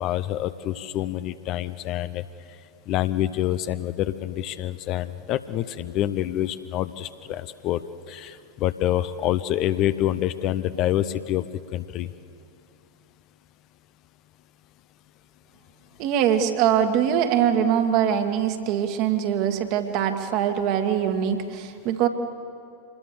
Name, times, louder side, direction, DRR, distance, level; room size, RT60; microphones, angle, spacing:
voice 1, 0.0-2.2 2.9-11.5 11.7-12.1, left 13 dB, 40° left, 13 dB, 0.8 m, -27 dB
voice 2, 16.0-22.1, right 9 dB, 40° right, 6 dB, 1.9 m, -23 dB
25.5 x 20.5 x 7.0 m, 2.5 s
figure-of-eight pair, 90°, 0 cm